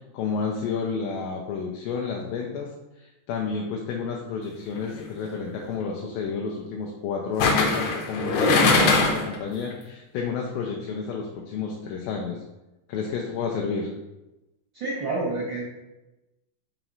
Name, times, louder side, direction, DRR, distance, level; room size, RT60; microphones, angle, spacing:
voice 1, 0.1-2.7 3.0-12.4 12.9-13.9, left 5 dB, 85° left, -1 dB, 2.4 m, -30 dB
sound 1, 4.8-5.1 7.4-9.4 9.7-9.8, left 3 dB, 70° left, 1.8 m, -21 dB
voice 2, 14.7-15.6, right 2 dB, 80° right, -5 dB, 1.0 m, -28 dB
6.0 x 3.0 x 5.3 m, 1.0 s
omnidirectional pair, 3.9 m